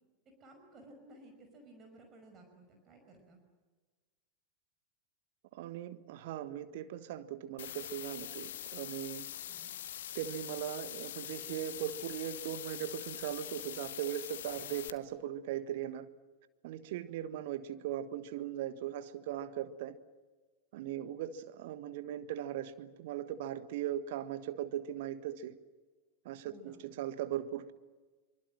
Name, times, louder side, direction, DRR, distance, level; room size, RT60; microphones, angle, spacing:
voice 1, 0.3-3.4 9.5-9.7 17.0-17.3 20.7-21.1 26.4-26.8, right 2 dB, 25° right, 4 dB, 5.4 m, -57 dB
voice 2, 5.5-9.3 10.1-16.1 16.6-20.0 20.7-25.6 26.2-27.7, right 11 dB, 50° right, 12 dB, 1.4 m, -39 dB
sound 1, 7.6-14.9, left 11 dB, 60° left, 1.1 m, -43 dB
25.0 x 24.5 x 7.6 m, 1.3 s
figure-of-eight pair, 90°, 0 cm